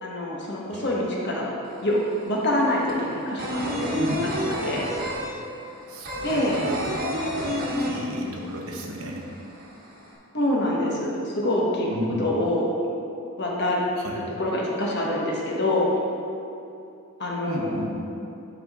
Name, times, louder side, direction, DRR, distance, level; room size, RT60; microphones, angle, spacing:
voice 1, 0.0-1.5 1.8-2.0 2.2-4.0 4.6-4.8 6.2-6.6 10.3-11.9 12.2-12.7 13.4-13.8 14.4-15.9 17.2-17.8, left 1 dB, 50° left, -3 dB, 1.2 m, -25 dB
sound 1, 1.6-1.7 2.0-8.6 8.8-8.9 9.3-10.1, equal, 40° right, 1.3 m, -29 dB
voice 2, 5.9-9.3 9.6-9.7 11.9-12.3 13.9-14.3 17.5-18.0, right 1 dB, 70° right, 0 dB, 0.9 m, -34 dB
11.0 x 3.8 x 3.6 m, 2.6 s
head